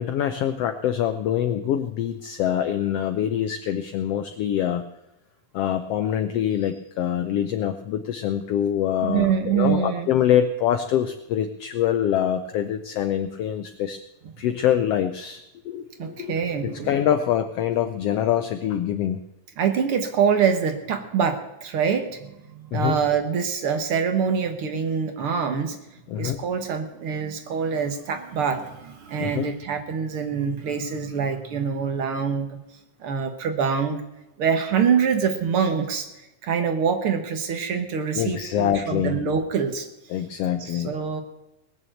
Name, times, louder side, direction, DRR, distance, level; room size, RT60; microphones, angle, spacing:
voice 1, 0.0-4.8 5.5-14.0 14.4-16.3 16.6-19.2 22.7-23.0 26.1-26.4 29.2-29.5 38.1-39.2 40.1-40.9, left 10 dB, 90° left, 9 dB, 1.3 m, -25 dB
voice 2, 9.0-10.1 16.0-17.0 19.6-25.8 26.2-32.6 33.0-34.0 34.4-36.1 36.4-39.9 40.6-41.2, right 6 dB, 55° right, 7 dB, 1.8 m, -25 dB
19.5 x 7.0 x 7.8 m, 0.94 s
omnidirectional pair, 3.6 m